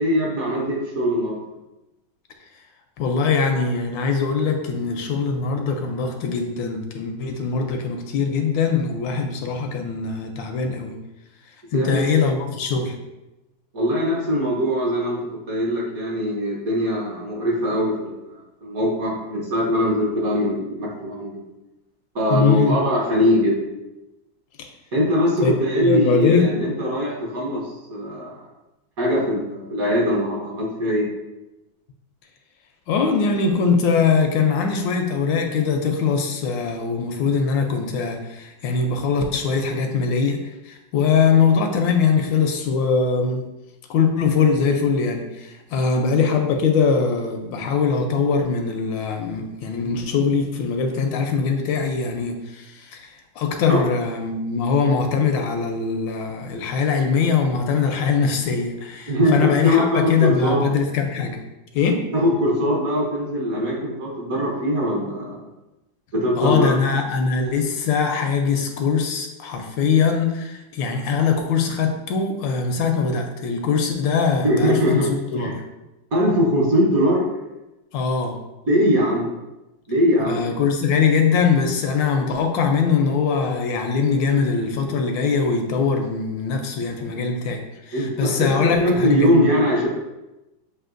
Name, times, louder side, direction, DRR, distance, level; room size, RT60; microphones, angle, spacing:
voice 1, 0.0-1.4 11.7-12.0 13.7-21.4 22.1-23.6 24.9-28.4 29.0-31.1 53.7-53.8 59.1-60.6 62.1-65.4 66.1-66.7 74.4-75.1 75.4-75.5 76.1-77.2 78.7-79.3 79.9-80.4 87.9-89.9, equal, 55° right, -4 dB, 1.2 m, -21 dB
voice 2, 3.0-11.0 11.7-13.0 22.3-22.8 25.4-26.5 32.9-43.4 43.9-61.4 61.7-62.0 66.4-75.6 77.9-78.4 80.3-89.5, left 5 dB, 75° left, 4 dB, 1.2 m, -22 dB
7.4 x 2.7 x 2.5 m, 1.0 s
omnidirectional pair, 2.2 m